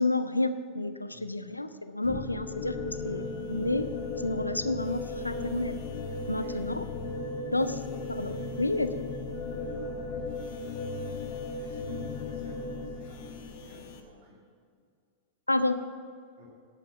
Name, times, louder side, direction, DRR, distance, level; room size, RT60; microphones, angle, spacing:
voice 1, 0.0-3.9 4.2-5.8 6.3-6.8 7.5-7.8 8.1-9.0 15.5-15.8, left 2 dB, 85° left, 11 dB, 0.6 m, -30 dB
sound 1, 2.0-14.0, left 3 dB, 50° left, 1.2 m, -36 dB
voice 2, 9.5-10.8 11.6-14.4 16.4-16.5, equal, 50° right, -4 dB, 2.8 m, -51 dB
10.5 x 8.5 x 7.1 m, 2.2 s
figure-of-eight pair, 90°, 0 cm